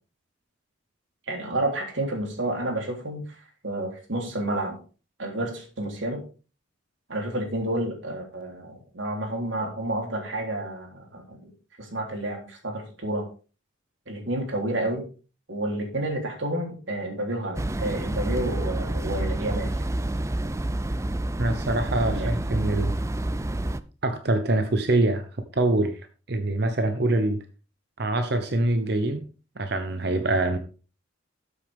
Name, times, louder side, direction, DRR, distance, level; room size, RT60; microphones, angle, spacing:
voice 1, 1.3-3.2 3.6-4.8 5.2-6.2 7.1-11.5 11.8-13.3 14.1-15.0 15.5-19.7 22.1-22.3, right 1 dB, 75° right, 2 dB, 3.5 m, -30 dB
sound 1, 17.5-23.8, right 1 dB, 15° right, 0.4 m, -28 dB
voice 2, 21.4-22.9 24.0-25.3 25.5-26.0 26.3-27.4 28.0-29.2 29.6-30.6, right 2 dB, 55° right, 8 dB, 0.9 m, -24 dB
13.0 x 8.2 x 3.6 m, 0.35 s
head